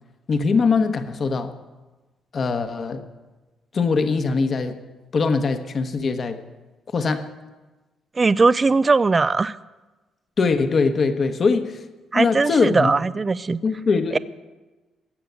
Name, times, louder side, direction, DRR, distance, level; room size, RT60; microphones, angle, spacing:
voice 1, 0.3-1.5 2.3-3.1 3.7-4.8 5.1-6.4 6.9-7.3 10.4-11.8 12.1-12.9 13.6-14.2, left 4 dB, 45° left, 8 dB, 1.2 m, -22 dB
voice 2, 8.2-9.6 12.1-13.6 14.1-14.2, right 4 dB, 30° right, 17 dB, 0.4 m, -19 dB
16.0 x 6.9 x 9.5 m, 1.2 s
cardioid pair, 90°, 0 cm